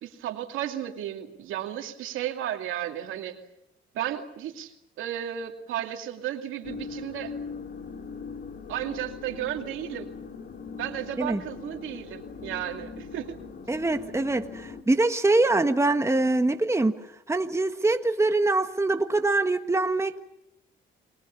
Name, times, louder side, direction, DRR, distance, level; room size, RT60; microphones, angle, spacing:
voice 1, 0.0-3.4 3.9-7.3 8.7-10.1 10.8-13.4, right 11 dB, 90° right, 5 dB, 2.5 m, -34 dB
sound 1, 6.6-14.8, left 5 dB, 55° left, 2.6 m, -40 dB
voice 2, 13.7-16.9 17.3-20.3, right 2 dB, 15° right, 7 dB, 1.5 m, -24 dB
29.5 x 22.0 x 7.1 m, 0.79 s
cardioid pair, 90°, 20 cm